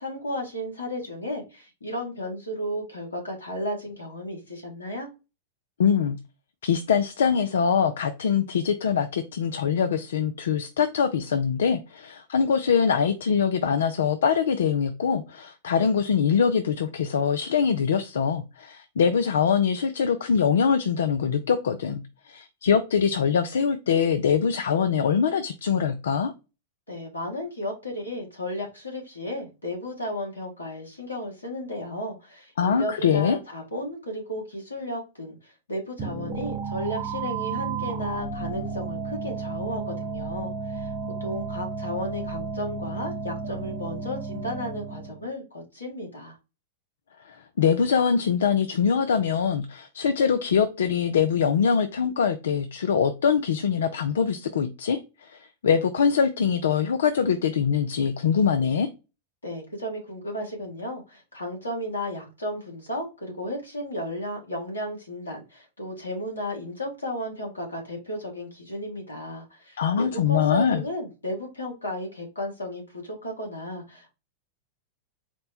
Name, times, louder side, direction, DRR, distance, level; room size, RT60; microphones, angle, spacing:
voice 1, 0.0-5.1 26.9-40.9 41.2-46.4 59.4-74.1, left 1 dB, 90° left, 1.6 m, -34 dB
voice 2, 5.8-6.2 6.6-26.3 32.6-33.4 47.3-58.9 69.8-70.8, left 7 dB, 70° left, 0.4 m, -23 dB
sound 1, 36.0-45.2, right 4 dB, 35° right, 0.9 m, -33 dB
4.3 x 2.1 x 4.1 m
figure-of-eight pair, 95°, 0 cm